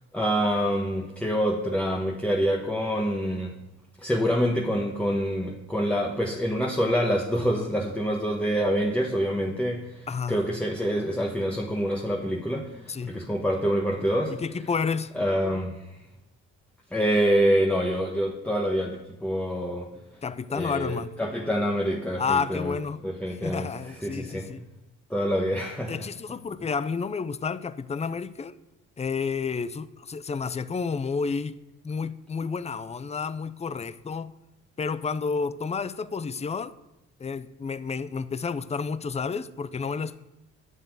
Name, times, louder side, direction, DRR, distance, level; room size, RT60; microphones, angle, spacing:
voice 1, 0.1-3.5 4.0-14.4 15.1-15.9 16.9-19.9 20.5-22.8 23.0-24.5 25.1-26.1, equal, 5° left, 1.2 m, -26 dB
voice 2, 10.1-10.4 12.9-13.2 14.3-15.1 20.2-21.1 22.2-23.1 23.4-24.6 25.9-28.6 29.0-31.6 31.8-34.4 34.8-36.7 37.2-40.2, left 5 dB, 20° left, 0.6 m, -30 dB
10.0 x 6.9 x 8.3 m
cardioid pair, 90°, 30 cm